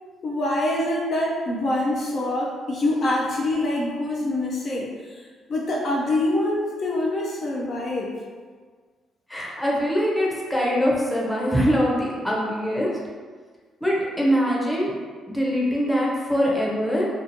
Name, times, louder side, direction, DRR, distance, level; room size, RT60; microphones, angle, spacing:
voice 1, 0.2-8.2, left 1 dB, 50° left, -3 dB, 0.4 m, -25 dB
voice 2, 9.3-12.9 13.8-14.9 15.3-17.1, equal, 5° left, -4 dB, 0.7 m, -23 dB
2.9 x 2.4 x 2.6 m, 1.5 s
cardioid pair, 90°, 0 cm